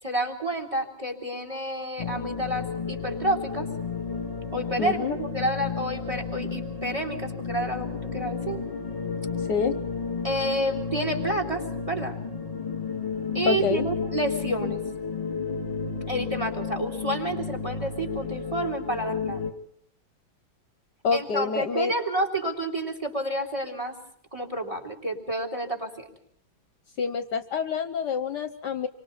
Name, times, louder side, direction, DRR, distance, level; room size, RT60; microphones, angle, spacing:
voice 1, 0.0-3.7 4.5-8.6 10.2-12.2 13.3-14.8 16.1-19.5 21.1-24.0 24.3-26.0, right 1 dB, 15° right, 5 dB, 3.7 m, -29 dB
sound 1, 2.0-19.5, left 5 dB, 20° left, 2.3 m, -32 dB
voice 2, 4.8-5.2 9.5-9.7 13.5-13.8 21.0-21.9 27.0-28.9, left 5 dB, 60° left, 9 dB, 1.5 m, -27 dB
28.5 x 24.5 x 4.1 m, 0.65 s
omnidirectional pair, 2.1 m